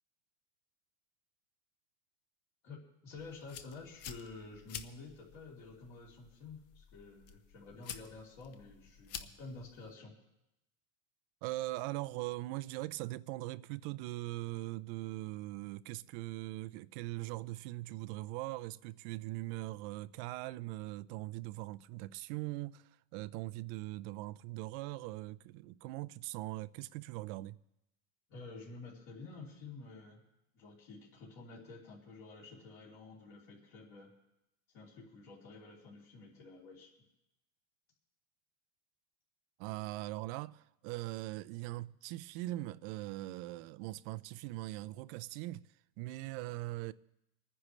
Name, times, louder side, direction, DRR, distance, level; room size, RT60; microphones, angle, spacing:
voice 1, 2.6-10.1 28.3-30.2 30.5-34.1 34.7-36.9, left 3 dB, 50° left, 3.2 m, -50 dB
sound 1, 3.2-10.0, left 8 dB, 35° left, 0.9 m, -50 dB
voice 2, 11.4-27.6 39.6-45.7 46.0-46.9, right 18 dB, 45° right, 0.4 m, -41 dB
27.5 x 9.9 x 3.2 m
supercardioid pair, 140°, 41 cm